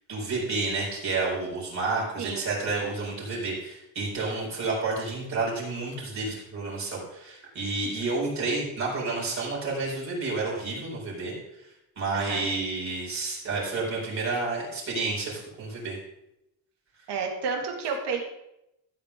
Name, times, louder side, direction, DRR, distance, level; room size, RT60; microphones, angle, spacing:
voice 1, 0.1-11.3 12.0-16.0, right 3 dB, 35° right, -4 dB, 4.6 m, -30 dB
voice 2, 12.1-12.4 17.1-18.2, right 5 dB, 55° right, 2 dB, 2.4 m, -30 dB
14.5 x 7.9 x 3.8 m, 0.87 s
cardioid pair, 160°, 48 cm